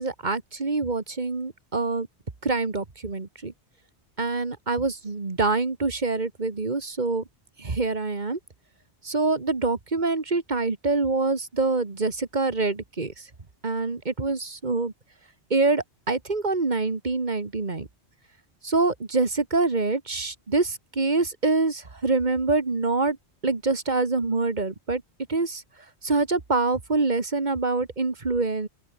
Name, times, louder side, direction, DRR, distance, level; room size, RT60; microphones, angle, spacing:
voice 1, 0.0-2.1 2.4-3.5 4.2-7.2 7.6-8.4 9.0-13.1 13.6-14.9 15.5-17.9 18.6-23.2 23.4-25.0 25.3-25.6 26.0-28.7, right 3 dB, 40° right, 1.9 m, -25 dB
open air
omnidirectional pair, 1.1 m